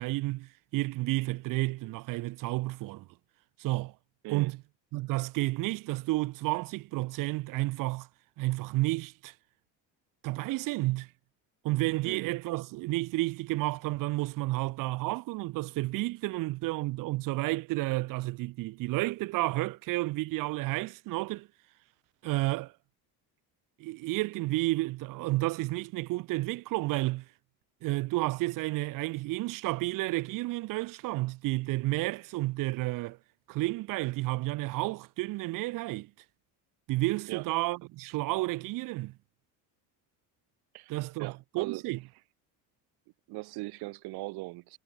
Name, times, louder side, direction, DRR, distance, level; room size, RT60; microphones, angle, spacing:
voice 1, 0.0-3.1 3.6-3.9 4.3-4.6 4.9-8.1 8.4-9.3 10.2-11.1 11.6-21.5 22.2-22.7 23.8-27.2 27.8-33.2 33.5-36.1 36.9-39.1 40.9-42.0, right 20 dB, 60° right, 0.7 m, -31 dB
voice 2, 12.0-12.4 37.3-37.5 40.7-41.8 43.3-44.8, right 22 dB, 80° right, 2.6 m, -39 dB
cardioid pair, 145°, 38 cm